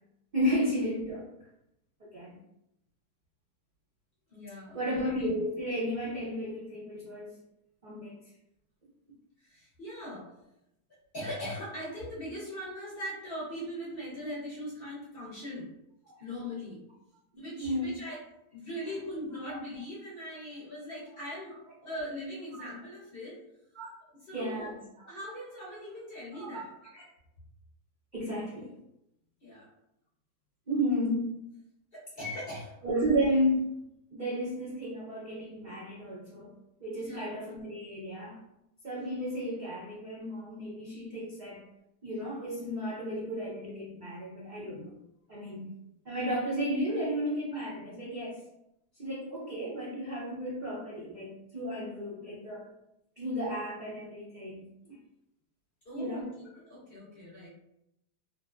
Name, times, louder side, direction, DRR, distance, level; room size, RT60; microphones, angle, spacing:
voice 1, 0.3-1.2 2.0-2.4 4.7-7.4 7.8-8.2 16.0-16.2 17.3-17.9 18.7-18.9 23.7-23.9 24.3-24.9 26.3-26.5 26.9-27.0 28.1-28.7 30.7-31.3 32.8-33.7 34.1-36.5 36.8-38.4 38.8-41.6 42.0-44.9 45.3-45.7 46.0-48.3 49.0-52.6 53.2-55.0 55.9-56.3, equal, 65° right, -8 dB, 0.4 m, -33 dB
voice 2, 4.3-4.8 9.4-10.3 11.1-15.7 16.2-16.8 17.3-18.2 18.5-21.5 21.8-23.4 24.3-24.7 25.1-26.6 29.4-29.7 31.9-32.7 37.0-37.3 55.8-57.5, equal, 50° left, -7 dB, 0.7 m, -40 dB
3.0 x 2.0 x 2.3 m, 0.84 s
omnidirectional pair, 1.8 m